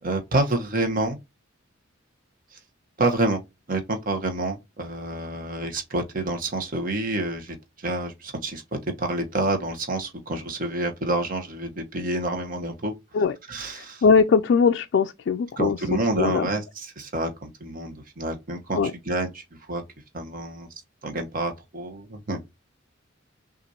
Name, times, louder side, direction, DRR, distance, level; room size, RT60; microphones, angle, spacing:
voice 1, 0.0-1.2 2.5-2.6 3.0-3.4 3.7-8.6 9.0-12.9 13.5-14.0 15.6-18.8 19.0-19.8 20.1-20.7 21.0-22.4, right 2 dB, 45° right, 1.1 m, -28 dB
voice 2, 13.8-15.8 16.2-16.5 18.7-18.9, left 5 dB, 60° left, 0.3 m, -20 dB
5.8 x 2.6 x 2.8 m
head